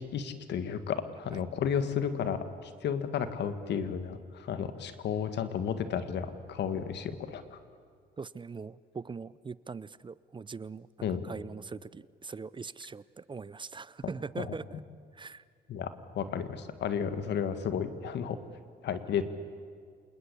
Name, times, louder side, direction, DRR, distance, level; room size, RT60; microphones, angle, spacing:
voice 1, 0.0-7.6 11.0-11.2 14.4-14.5 15.7-18.4 18.8-19.2, left 7 dB, 70° left, 10 dB, 1.8 m, -33 dB
voice 2, 8.2-14.8 15.1-15.4, right 5 dB, 25° right, 19 dB, 0.6 m, -42 dB
27.0 x 20.5 x 8.5 m, 2.1 s
supercardioid pair, 70°, 18 cm